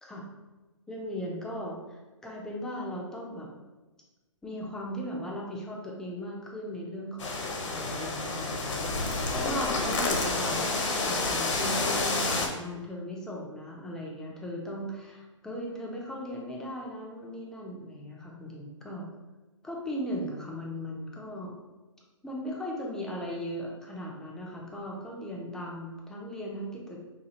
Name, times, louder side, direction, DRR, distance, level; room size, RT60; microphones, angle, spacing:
voice 1, 0.9-3.5 4.4-7.3 7.6-19.1 19.6-21.5 22.2-27.0, equal, 5° left, -2 dB, 0.3 m, -37 dB
sound 1, 7.2-12.5, left 3 dB, 70° left, 0.7 m, -29 dB
4.2 x 2.3 x 2.8 m, 1.2 s
hypercardioid pair, 140°, 16 cm